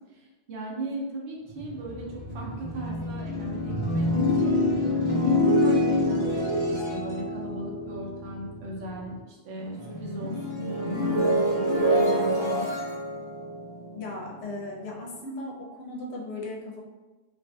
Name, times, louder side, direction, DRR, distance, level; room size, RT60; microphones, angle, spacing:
voice 1, 0.1-4.5 5.1-12.7, right 1 dB, 65° right, -2 dB, 0.8 m, -37 dB
sound 1, 1.5-9.2 9.5-14.6, left 1 dB, 25° left, 1.1 m, -26 dB
voice 2, 14.0-16.8, left 2 dB, 65° left, -2 dB, 0.8 m, -37 dB
2.4 x 2.4 x 2.3 m, 1.2 s
omnidirectional pair, 1.3 m